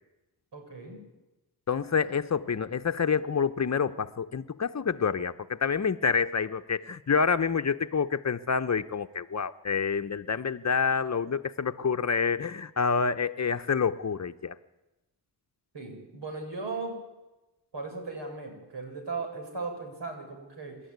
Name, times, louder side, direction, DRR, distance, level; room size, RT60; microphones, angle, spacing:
voice 1, 0.5-1.1 15.7-17.0 17.7-20.8, right 3 dB, 75° right, 3 dB, 7.1 m, -37 dB
voice 2, 1.7-14.6, left 6 dB, 40° left, 10 dB, 0.9 m, -28 dB
27.5 x 12.5 x 9.5 m, 1.0 s
cardioid pair, 80°, 42 cm